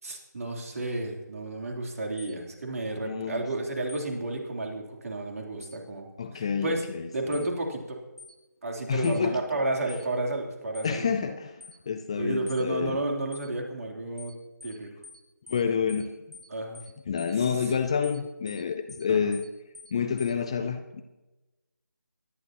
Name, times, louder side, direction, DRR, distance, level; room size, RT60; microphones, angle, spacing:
voice 1, 0.0-6.1 6.3-6.9 7.1-8.0 8.6-11.1 12.1-14.3 14.6-14.9 16.5-16.8 17.4-17.5 19.1-19.3, right 2 dB, 50° right, 1 dB, 3.3 m, -32 dB
sound 1, 2.2-2.3 3.9-4.1 5.6-5.8 7.3-7.5 8.2-8.3 9.0-9.2 9.9-10.1 10.7-10.9 11.6-11.8 12.5-12.6 13.3-13.5 14.2-14.3 14.6-14.8 15.0-15.2 15.5-15.6 15.9-16.1 16.3-16.5 16.7-16.9 17.2-17.3 17.6-17.8 18.0-18.2 18.5-18.6 18.9-19.1 19.3-19.5 19.7-19.9 20.2-20.3, left 3 dB, 90° right, 2.5 m, -47 dB
voice 2, 3.0-3.4 6.2-7.4 8.9-9.4 10.8-13.0 15.5-16.1 17.1-19.4 19.9-21.0, left 6 dB, 15° left, 7 dB, 0.4 m, -28 dB
24.5 x 11.0 x 2.9 m, 1.1 s
figure-of-eight pair, 160°, 10 cm